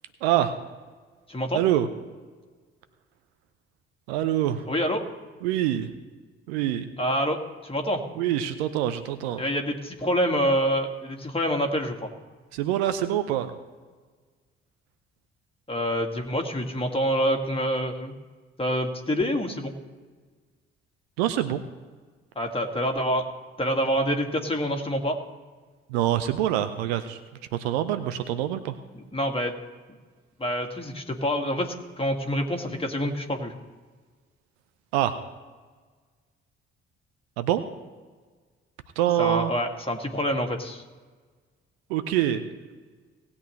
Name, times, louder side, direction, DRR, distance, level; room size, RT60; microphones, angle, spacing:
voice 1, 0.2-0.6 1.5-1.9 4.1-4.7 5.4-5.9 6.5-6.9 8.2-9.4 12.5-13.5 21.2-21.6 25.9-27.2 27.5-28.8 34.9-35.2 37.4-37.6 39.0-39.5 41.9-42.4, right 12 dB, 70° right, 11 dB, 0.7 m, -25 dB
voice 2, 1.3-1.6 4.7-5.0 7.0-8.0 9.4-12.1 15.7-18.1 18.6-19.7 22.4-23.2 23.6-25.2 28.9-29.5 30.4-33.5 39.2-40.8, equal, 15° left, 2 dB, 2.1 m, -26 dB
18.5 x 8.5 x 3.2 m, 1.4 s
figure-of-eight pair, 45°, 33 cm